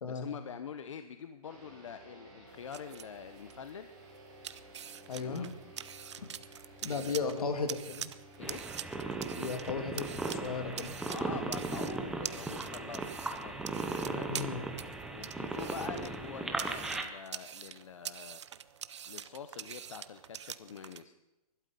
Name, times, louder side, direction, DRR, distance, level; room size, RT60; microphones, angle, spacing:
voice 1, 0.0-3.9 5.2-5.5 6.9-7.5 8.4-8.7 11.1-13.5 14.0-14.3 15.1-18.5 19.1-21.1, left 7 dB, 55° left, 10 dB, 0.8 m, -45 dB
sound 1, 1.4-16.3, equal, 30° right, 7.1 m, -56 dB
sound 2, 2.5-21.0, right 9 dB, 50° right, 0.6 m, -46 dB
voice 2, 5.1-5.5 6.8-8.1 9.4-11.0 14.3-14.6, left 4 dB, 75° left, 6 dB, 2.7 m, -35 dB
sound 3, 8.4-17.0, right 3 dB, ahead, 0.6 m, -37 dB
20.5 x 12.0 x 5.3 m, 0.99 s
hypercardioid pair, 170°, 19 cm